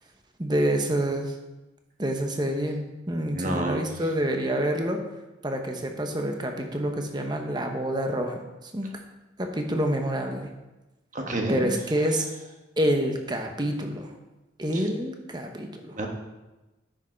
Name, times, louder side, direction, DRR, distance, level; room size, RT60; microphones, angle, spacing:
voice 1, 0.4-1.4 2.0-5.0 5.4-8.9 9.4-10.5 11.5-12.3 12.8-14.1 14.6-16.0, right 1 dB, 20° right, 4 dB, 0.9 m, -27 dB
voice 2, 3.3-3.9 11.1-11.7 14.7-14.8 16.0-16.1, right 1 dB, 40° right, 2 dB, 1.4 m, -29 dB
10.0 x 6.4 x 4.5 m, 1.1 s
head